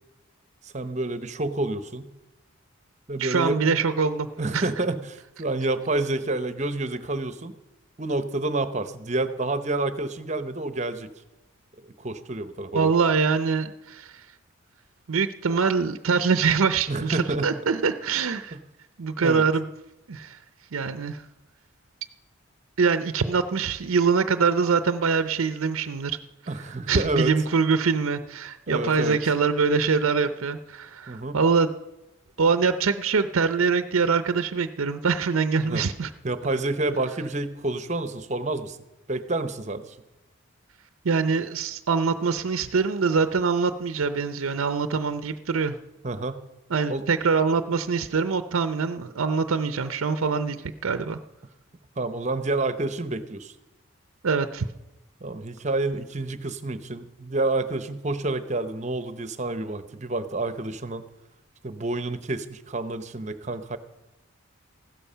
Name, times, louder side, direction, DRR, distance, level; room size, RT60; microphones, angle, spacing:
voice 1, 0.6-2.1 3.1-3.6 4.4-7.5 8.0-11.1 11.8-12.9 16.9-17.5 18.5-18.6 19.2-19.4 26.5-27.3 28.7-29.2 31.1-31.4 35.6-35.8 36.2-38.8 39.1-40.0 46.0-46.4 46.9-47.0 52.0-53.5 55.2-61.1 61.6-63.8, right 2 dB, 35° right, 11 dB, 0.9 m, -29 dB
voice 2, 3.2-4.3 4.5-4.7 12.7-14.2 15.1-18.6 19.0-19.7 20.1-20.4 20.7-21.2 22.8-26.2 26.9-31.7 32.4-36.1 41.0-45.8 46.7-51.2 54.2-54.7, right 5 dB, 85° right, 10 dB, 0.6 m, -24 dB
15.5 x 12.5 x 5.7 m, 1.0 s
head